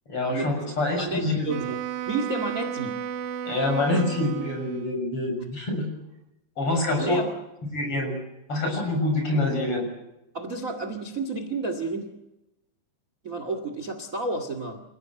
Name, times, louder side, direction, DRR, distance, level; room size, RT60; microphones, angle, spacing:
voice 1, 0.1-1.5 3.4-5.9 6.6-7.2 7.7-8.2 8.5-9.9, left 2 dB, 35° left, 2 dB, 7.6 m, -26 dB
voice 2, 1.0-1.8 2.1-3.0 5.4-5.6 7.0-7.3 10.3-12.1 13.2-14.8, right 3 dB, 30° right, 6 dB, 1.5 m, -31 dB
Wind instrument woodwind instrument, 1.5-5.0, right 9 dB, 70° right, 1.9 m, -33 dB
29.5 x 16.5 x 7.7 m, 0.92 s
omnidirectional pair, 4.6 m